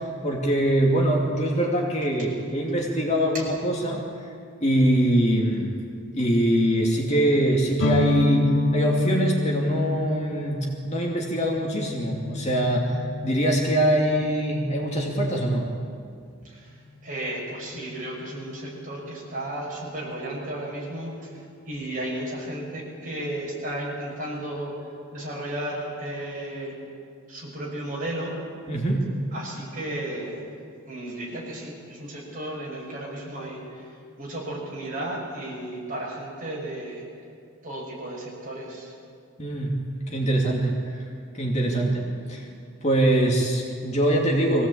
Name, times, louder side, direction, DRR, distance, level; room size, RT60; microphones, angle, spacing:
voice 1, 0.0-4.0 4.6-5.7 6.1-15.7 28.7-29.0 39.4-39.7 40.1-41.1 41.3-42.5 42.8-44.7, right 1 dB, 30° left, -1 dB, 2.6 m, -23 dB
sound 1, 7.8-15.4, left 2 dB, 70° left, 1.5 m, -28 dB
voice 2, 16.4-24.7 25.1-26.7 27.3-28.3 29.3-30.5 30.9-33.9 34.2-37.0 37.6-38.9, right 1 dB, 35° right, -4 dB, 6.4 m, -34 dB
23.0 x 17.0 x 8.6 m, 2.3 s
head